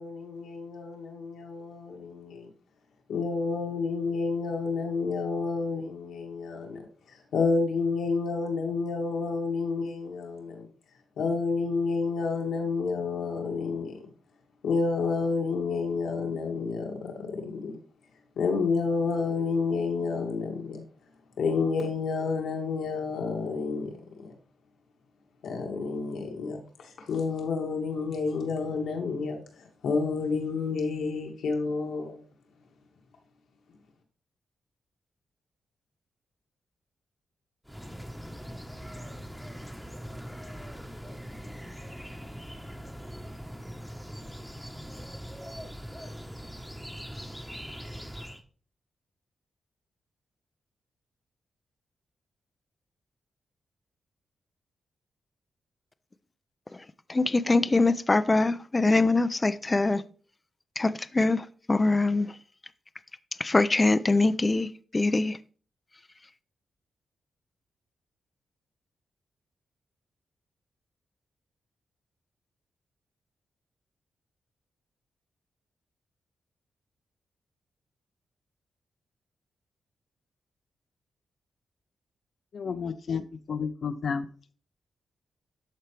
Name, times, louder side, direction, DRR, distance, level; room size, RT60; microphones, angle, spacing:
voice 1, 0.0-2.5 3.1-10.7 11.2-14.1 14.6-17.7 18.4-20.8 21.4-23.9 24.2-24.3 25.4-32.2, left 4 dB, 90° left, 2.1 m, -30 dB
sound 1, 37.6-48.4, equal, ahead, 1.1 m, -41 dB
voice 2, 57.1-60.0 60.8-62.3 63.4-65.4, left 2 dB, 25° left, 0.5 m, -23 dB
voice 3, 82.5-84.3, left 6 dB, 65° left, 0.7 m, -32 dB
12.5 x 4.5 x 3.3 m
cardioid pair, 90°, 0 cm